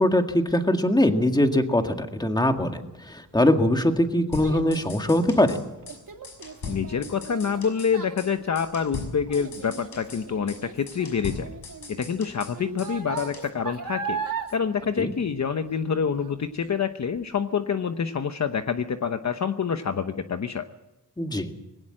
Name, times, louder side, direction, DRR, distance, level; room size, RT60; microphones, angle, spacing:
voice 1, 0.0-5.6 15.0-15.1 21.2-21.5, left 1 dB, 10° left, 5 dB, 1.9 m, -22 dB
Child speech kid speaking, 3.2-15.9 16.2-16.6 17.1-17.2, right 6 dB, 55° right, 2.5 m, -38 dB
sound 1, 4.3-5.6 5.9-6.0 6.2-7.9 8.2-8.3 8.6-10.2 10.5-10.6 10.9-12.9 13.2-13.5, left 4 dB, 90° left, 6.5 m, -39 dB
voice 2, 6.7-11.5 11.9-20.7, left 6 dB, 45° left, 8 dB, 0.9 m, -27 dB
21.0 x 17.5 x 7.7 m, 0.95 s
wide cardioid pair, 130°, 39 cm